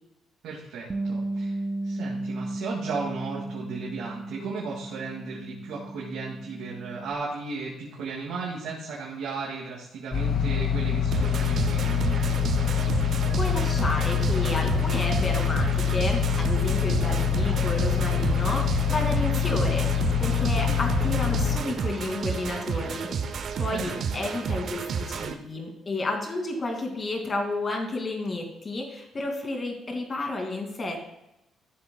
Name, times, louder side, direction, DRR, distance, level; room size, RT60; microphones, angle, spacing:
voice 1, 0.4-1.6 1.8-12.2 20.5-20.8 23.7-24.0, right 4 dB, 80° right, -4 dB, 2.3 m, -35 dB
Bass guitar, 0.9-7.1, right 2 dB, 25° right, 0.6 m, -34 dB
sound 1, 10.1-21.6, left 8 dB, 65° left, 1.9 m, -25 dB
sound 2, 11.1-25.3, right 6 dB, 60° right, 0.8 m, -31 dB
voice 2, 13.0-23.1 23.3-31.0, left 2 dB, 35° left, 3 dB, 2.5 m, -31 dB
14.0 x 7.6 x 2.3 m, 0.87 s
cardioid pair, 90°, 0 cm